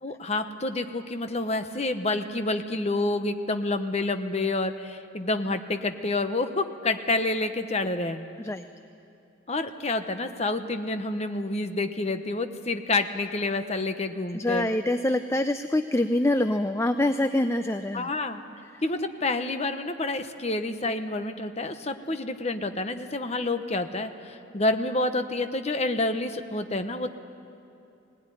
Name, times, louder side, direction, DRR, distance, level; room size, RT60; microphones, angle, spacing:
voice 1, 0.0-8.2 9.5-14.7 17.9-18.4 18.8-27.1, left 2 dB, 35° left, 8 dB, 1.0 m, -28 dB
voice 2, 14.3-18.1 18.6-18.8, left 1 dB, 15° left, 9 dB, 0.4 m, -25 dB
20.5 x 18.0 x 10.0 m, 2.7 s
head